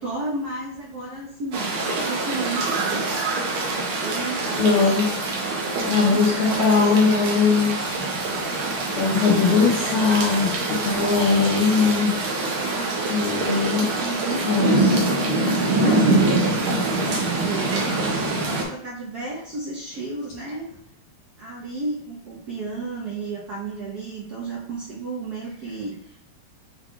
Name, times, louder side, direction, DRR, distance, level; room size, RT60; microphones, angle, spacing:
voice 1, 0.0-3.1 4.0-4.8 5.9-7.1 12.4-20.7 21.4-26.2, right 3 dB, 60° right, -4 dB, 1.1 m, -33 dB
sound 1, 1.5-18.6, right 2 dB, 80° right, 1.7 m, -24 dB
voice 2, 4.6-5.1 5.5-5.6 5.9-8.0 9.0-12.1 13.1-13.9 14.4-15.0, left 5 dB, 80° left, -7 dB, 1.8 m, -20 dB
6.0 x 2.3 x 3.7 m, 0.75 s
omnidirectional pair, 2.2 m